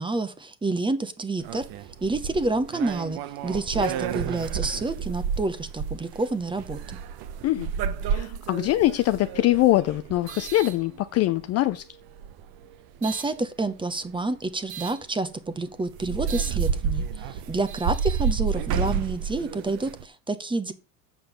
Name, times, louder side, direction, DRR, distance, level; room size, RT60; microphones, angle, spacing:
voice 1, 0.0-1.6 2.0-7.0 13.0-20.7, right 2 dB, 10° right, 0.9 m, -28 dB
sound 1, 1.4-11.4 12.1-13.3 14.7-15.0 15.5-15.6 15.9-20.0, right 7 dB, 50° right, 1.0 m, -30 dB
voice 2, 8.1-11.9, left 15 dB, 35° left, 0.4 m, -23 dB
7.4 x 5.6 x 6.8 m
supercardioid pair, 105°, 45 cm